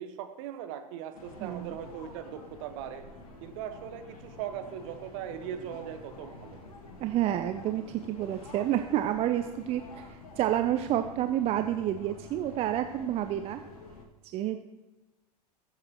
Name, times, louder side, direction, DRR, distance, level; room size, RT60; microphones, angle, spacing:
voice 1, 0.0-3.0 3.4-6.6, right 9 dB, 50° right, 6 dB, 1.3 m, -39 dB
sound 1, 1.1-14.0, left 2 dB, 60° left, 2.1 m, -48 dB
voice 2, 1.4-1.8 7.0-13.6 14.3-14.6, right 12 dB, 30° right, 8 dB, 0.6 m, -29 dB
21.0 x 7.5 x 3.0 m, 1.1 s
figure-of-eight pair, 90°, 21 cm